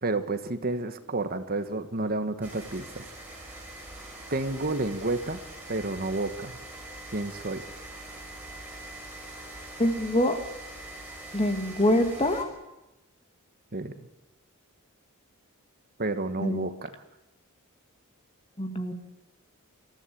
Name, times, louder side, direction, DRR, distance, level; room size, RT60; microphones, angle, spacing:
voice 1, 0.0-3.1 4.3-5.4 5.7-6.6 7.1-7.6 13.7-13.9 16.0-16.9, right 2 dB, 45° right, 10 dB, 1.3 m, -30 dB
sound 1, 2.4-12.4, right 2 dB, 10° right, 5.9 m, -43 dB
voice 2, 9.8-10.4 11.3-12.5 16.4-16.7 18.6-18.9, left 1 dB, 25° left, 6 dB, 2.3 m, -25 dB
26.5 x 14.5 x 8.6 m, 0.99 s
head